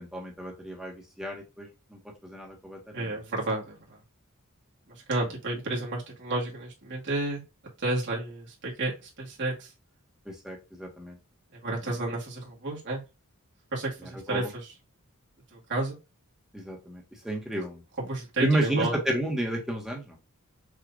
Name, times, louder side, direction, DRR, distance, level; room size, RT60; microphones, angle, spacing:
voice 1, 0.0-3.1 10.2-11.2 14.0-14.5 16.5-17.8 18.4-20.2, right 1 dB, ahead, 0 dB, 1.4 m, -32 dB
voice 2, 2.9-4.0 4.9-7.4 7.8-9.7 11.5-13.0 13.7-14.4 15.5-16.0 18.0-19.0, right 2 dB, 55° right, -3 dB, 1.9 m, -31 dB
6.2 x 2.9 x 2.5 m, 0.27 s
head